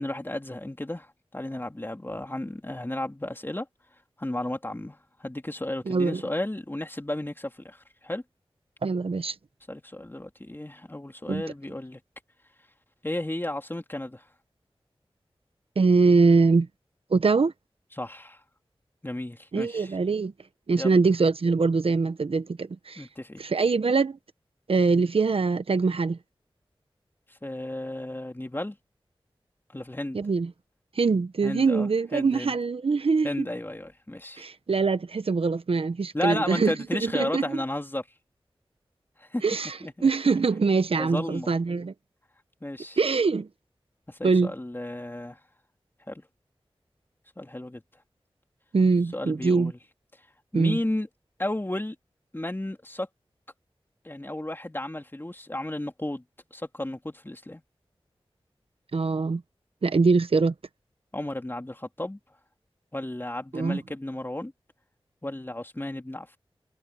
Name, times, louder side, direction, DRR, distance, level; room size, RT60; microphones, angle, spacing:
voice 1, 0.0-3.7 4.2-8.2 9.7-12.0 13.0-14.2 17.9-18.4 19.0-20.0 20.7-21.0 23.0-23.5 27.4-28.8 29.7-30.2 31.4-32.6 33.2-34.4 36.1-38.1 39.2-39.4 39.8-40.1 41.0-41.5 42.6-43.0 44.1-45.4 46.1-46.2 47.4-47.8 49.1-49.8 50.5-51.1 51.4-51.9 52.3-53.1 54.0-56.2 56.5-57.6 61.1-62.2 62.9-64.5 65.2-66.4, left 1 dB, 20° left, 3.1 m, -33 dB
voice 2, 5.9-6.2 8.8-9.3 11.3-11.4 15.8-16.7 17.1-17.5 19.5-20.3 20.7-23.0 23.4-24.2 24.7-26.2 30.1-30.5 31.0-33.5 34.4-36.7 37.0-37.4 39.4-39.7 40.0-41.9 43.0-43.5 44.2-44.5 48.7-49.7 50.5-50.8 58.9-59.4 59.8-60.5 63.5-63.8, right 4 dB, 75° right, 1.0 m, -23 dB
wide cardioid pair, 50°, 10 cm